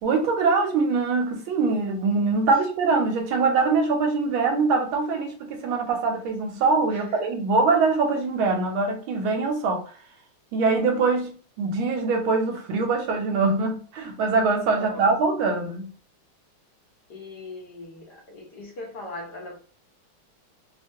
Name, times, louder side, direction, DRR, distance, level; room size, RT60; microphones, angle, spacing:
voice 1, 0.0-9.8 10.5-15.9, right 4 dB, 75° right, 1.4 m, -23 dB
voice 2, 6.9-7.3 14.8-15.0 17.1-19.6, left 2 dB, 60° left, 1.2 m, -39 dB
3.4 x 2.2 x 2.7 m
omnidirectional pair, 2.4 m